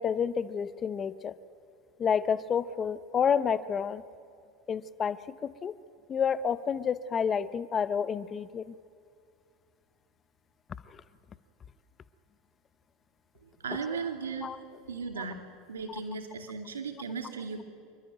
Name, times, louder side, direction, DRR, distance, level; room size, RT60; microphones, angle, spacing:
voice 1, 0.0-1.3 2.0-4.0 4.7-5.2 5.4-5.7 6.1-8.7 14.4-14.6, left 7 dB, 30° left, 14 dB, 0.7 m, -29 dB
voice 2, 13.4-15.4 15.7-17.6, right 5 dB, 85° right, 4 dB, 2.5 m, -37 dB
27.0 x 11.5 x 9.2 m, 2.4 s
hypercardioid pair, 90°, 0 cm